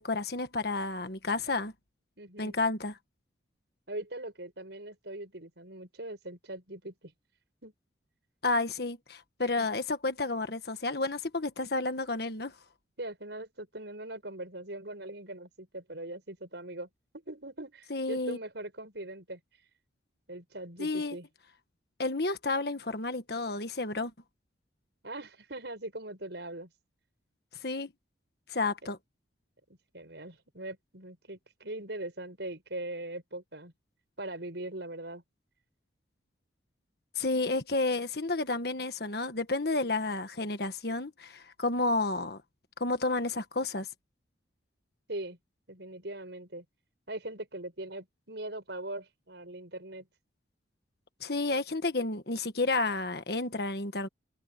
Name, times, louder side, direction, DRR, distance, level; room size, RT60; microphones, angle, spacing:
voice 1, 0.0-1.7 2.4-3.0 8.4-12.5 17.9-18.4 20.8-21.2 22.0-24.1 27.6-27.9 28.5-29.0 37.1-42.4 42.8-43.9 51.2-54.1, left 3 dB, 55° left, 1.5 m, -31 dB
voice 2, 2.2-2.6 3.9-7.1 7.6-7.7 9.4-9.7 13.0-16.9 17.1-19.4 20.3-21.3 25.0-26.7 29.9-33.7 34.2-35.2 45.1-45.4 45.7-46.6 47.1-50.1, right 1 dB, 65° right, 6.0 m, -41 dB
head